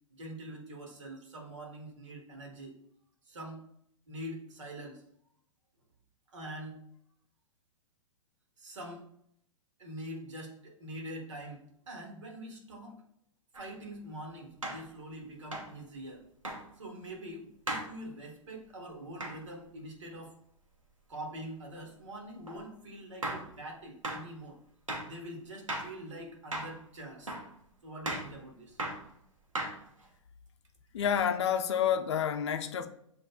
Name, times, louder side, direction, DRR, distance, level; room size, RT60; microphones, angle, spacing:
voice 1, 0.1-2.8 3.3-3.6 4.1-5.0 6.3-6.8 8.6-9.1 9.8-13.0 13.5-16.2 16.8-20.3 21.1-24.6 25.0-27.4 27.8-28.8, right 1 dB, 65° right, 1.3 m, -44 dB
sound 1, 13.5-13.7 14.6-14.9 15.5-15.8 16.4-16.6 17.7-17.9 19.2-19.4 22.5-22.6 23.2-23.5 24.0-24.3 24.9-25.1 25.7-25.9 26.5-26.8 27.3-27.5 28.1-28.3 28.8-29.1 29.6-30.1, right 1 dB, 90° right, 1.0 m, -36 dB
voice 2, 30.9-32.9, left 8 dB, 60° left, 0.5 m, -29 dB
7.6 x 2.6 x 2.3 m
figure-of-eight pair, 105°, 17 cm